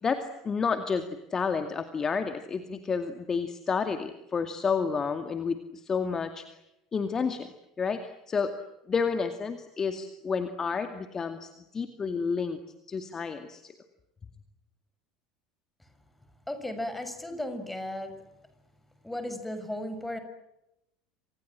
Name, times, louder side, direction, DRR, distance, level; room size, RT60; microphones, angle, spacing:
voice 1, 0.0-1.0 1.3-6.4 6.9-7.5 7.8-8.5 8.9-12.6 12.9-13.7, left 5 dB, 25° left, 8 dB, 2.3 m, -30 dB
voice 2, 16.5-18.1 19.0-20.2, left 1 dB, 5° left, 9 dB, 6.5 m, -35 dB
28.5 x 26.5 x 7.7 m, 0.88 s
figure-of-eight pair, 70°, 2 cm